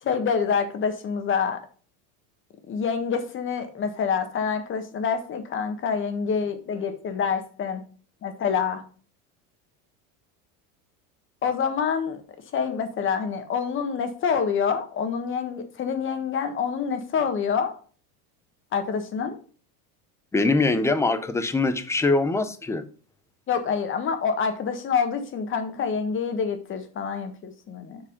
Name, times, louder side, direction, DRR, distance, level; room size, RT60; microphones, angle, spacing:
voice 1, 0.0-1.6 2.7-7.8 8.2-8.8 11.4-12.2 12.5-17.7 18.7-19.4 23.5-28.0, left 6 dB, 30° left, 8 dB, 1.4 m, -27 dB
voice 2, 20.3-22.8, left 3 dB, 5° left, 11 dB, 0.5 m, -23 dB
7.3 x 4.8 x 5.0 m, 0.40 s
supercardioid pair, 145°, 43 cm